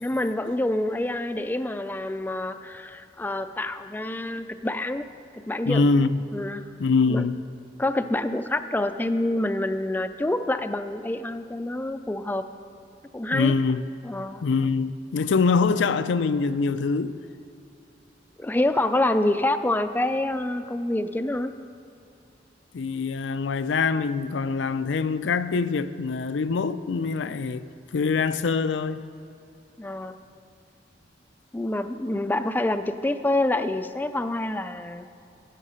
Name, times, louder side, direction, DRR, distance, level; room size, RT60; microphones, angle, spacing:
voice 1, 0.0-5.0 5.3-5.9 6.3-6.7 7.1-7.2 7.8-12.5 13.1-13.5 14.0-14.4 18.4-21.5 29.8-30.2 31.5-35.1, left 1 dB, 10° left, 0.3 m, -27 dB
voice 2, 5.7-6.3 6.8-7.4 13.3-13.8 14.4-17.2 22.7-27.6 27.9-29.0, left 4 dB, 80° left, 0.4 m, -24 dB
13.5 x 8.2 x 5.6 m
head